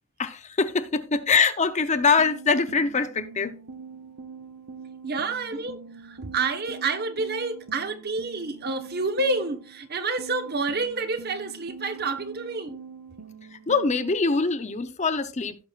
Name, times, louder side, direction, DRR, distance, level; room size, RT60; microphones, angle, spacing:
voice 1, 0.2-3.6 13.5-15.6, left 4 dB, 30° left, 0.7 m, -23 dB
sound 1, 2.2-9.8 10.2-14.1, right 5 dB, 85° right, 1.1 m, -44 dB
voice 2, 5.0-12.8, right 3 dB, 45° right, 1.1 m, -29 dB
16.5 x 6.1 x 2.4 m
head